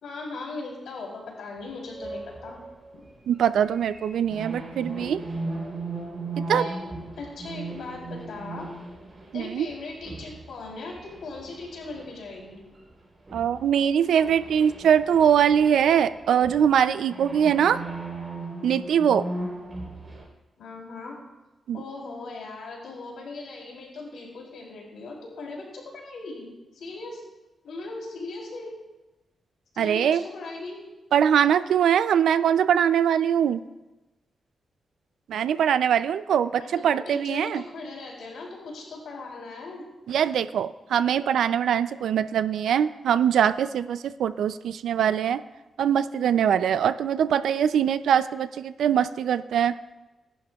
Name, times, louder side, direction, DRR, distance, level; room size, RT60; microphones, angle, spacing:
voice 1, 0.0-2.5 2.9-3.0 4.3-4.4 6.5-6.7 7.2-8.7 9.3-12.6 20.6-21.2 21.7-26.4 26.7-27.2 27.6-28.7 29.7-30.8 36.6-39.8, left 3 dB, 85° left, -2 dB, 3.4 m, -38 dB
sound 1, 1.9-12.9 13.3-20.3, right 2 dB, 30° right, 3.7 m, -38 dB
voice 2, 3.3-5.2 6.5-6.7 9.3-9.7 13.3-17.8 18.6-19.3 21.7-21.8 29.8-30.2 31.1-33.6 35.3-37.6 40.1-45.4 45.8-49.7, right 8 dB, 90° right, 13 dB, 0.4 m, -22 dB
19.5 x 11.0 x 2.4 m, 1.1 s
cardioid pair, 95°, 0 cm